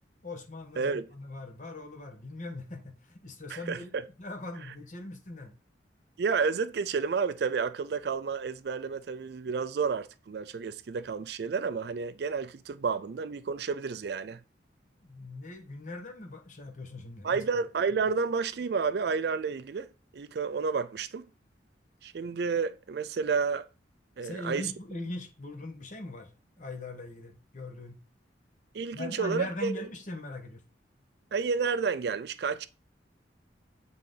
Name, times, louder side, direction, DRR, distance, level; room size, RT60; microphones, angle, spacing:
voice 1, 0.2-3.9 4.2-5.5 15.0-17.4 24.2-26.3 26.6-28.0 28.9-30.6, left 2 dB, 40° left, 1.2 m, -40 dB
voice 2, 3.5-4.0 6.2-14.4 17.2-19.9 20.1-21.3 22.0-23.7 24.2-24.6 28.7-29.9 31.3-32.7, right 5 dB, 60° right, 0.4 m, -30 dB
7.5 x 3.8 x 3.8 m
head